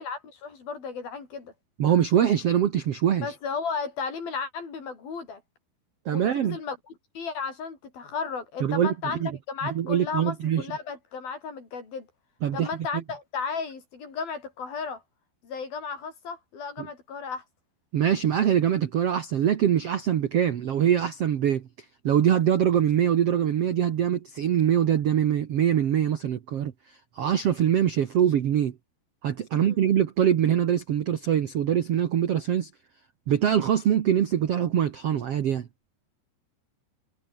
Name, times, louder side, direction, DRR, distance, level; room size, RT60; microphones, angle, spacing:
voice 1, 0.0-1.5 3.2-5.4 6.1-6.8 7.2-12.1 12.5-15.0 15.4-17.4 29.5-29.8, left 5 dB, 60° left, 7.0 m, -34 dB
voice 2, 1.8-3.3 6.0-6.6 8.6-8.9 9.2-9.3 9.7-10.6 12.4-12.7 16.8-16.9 17.9-21.7 22.0-28.7 29.2-32.7 33.3-35.7, right 9 dB, 75° right, 1.4 m, -23 dB
omnidirectional pair, 4.8 m